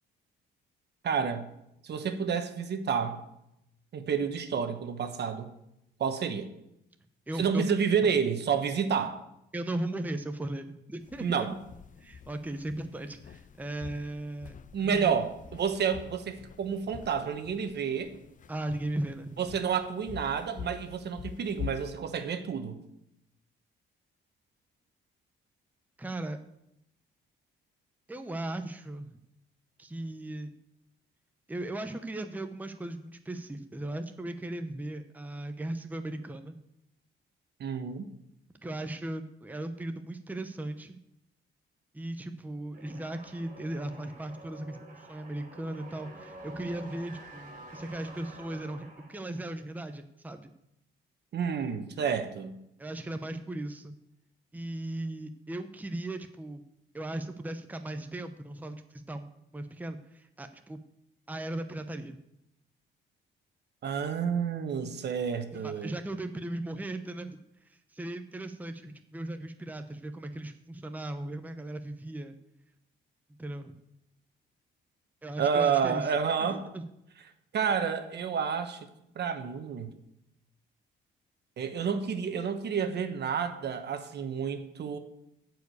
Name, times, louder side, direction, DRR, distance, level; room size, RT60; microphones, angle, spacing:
voice 1, 1.0-1.5 1.8-3.2 3.9-5.5 6.0-6.5 7.3-9.2 11.2-11.6 14.7-18.1 19.4-22.8 37.6-38.1 51.3-52.6 63.8-66.0 75.4-76.6 77.5-78.9 79.1-79.9 81.6-85.0, right 6 dB, 60° right, 1.2 m, -30 dB
voice 2, 7.3-7.6 9.5-11.5 12.0-14.5 14.8-15.2 18.5-19.4 26.0-26.4 28.1-29.2 29.8-30.5 31.5-36.6 38.6-41.0 41.9-50.5 52.8-53.9 54.5-56.6 56.9-60.8 61.3-62.2 65.5-72.4 73.4-73.7 75.2-76.1 76.4-76.8, right 1 dB, 10° right, 0.8 m, -37 dB
sound 1, 11.0-21.9, left 8 dB, 40° left, 0.6 m, -46 dB
sound 2, 42.7-49.5, right 1 dB, 40° right, 3.0 m, -49 dB
11.0 x 4.8 x 8.3 m
cardioid pair, 90°, 20 cm